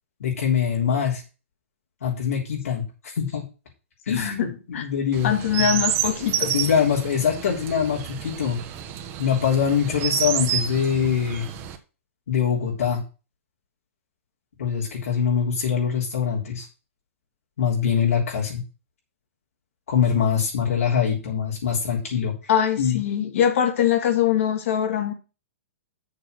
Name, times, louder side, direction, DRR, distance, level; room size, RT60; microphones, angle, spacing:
voice 1, 0.2-1.2 2.0-3.4 4.1-5.3 5.6-5.8 6.4-8.6 9.2-11.5 12.3-13.0 14.6-16.7 17.6-18.6 19.9-22.3 22.8-23.0, left 7 dB, 80° left, 3.5 m, -23 dB
voice 2, 4.2-4.8 5.2-6.5 22.5-25.1, left 9 dB, 65° left, 2.5 m, -23 dB
Chirp tweet, 5.1-11.8, right 10 dB, 30° right, 1.2 m, -29 dB
6.6 x 6.4 x 6.5 m
hypercardioid pair, 145°, 8 cm